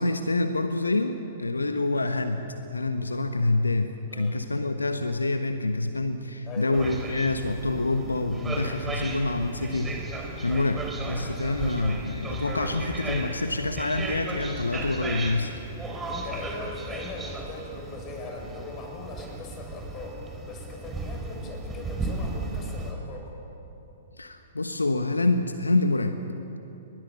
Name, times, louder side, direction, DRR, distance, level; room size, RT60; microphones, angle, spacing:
voice 1, 0.0-10.0 10.4-15.5 24.2-26.2, left 2 dB, 80° left, 8 dB, 1.2 m, -27 dB
voice 2, 4.1-4.4 6.5-6.8 10.5-10.7 15.9-20.2 20.5-23.3, left 3 dB, 25° left, 1 dB, 6.7 m, -40 dB
sound 1, 6.7-22.9, right 2 dB, 15° right, 3.9 m, -35 dB
30.0 x 22.5 x 6.9 m, 3.0 s
figure-of-eight pair, 110°, 0 cm